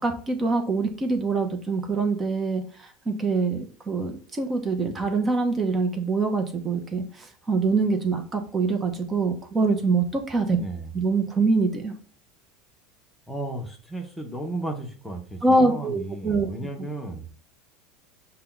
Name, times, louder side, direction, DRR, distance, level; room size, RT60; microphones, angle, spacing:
voice 1, 0.0-10.6 10.9-11.9 15.4-16.5, right 3 dB, 20° right, 5 dB, 0.8 m, -24 dB
voice 2, 10.6-10.9 13.3-17.3, right 2 dB, 5° left, 3 dB, 0.8 m, -34 dB
5.7 x 2.2 x 3.8 m, 0.43 s
supercardioid pair, 115°, 0 cm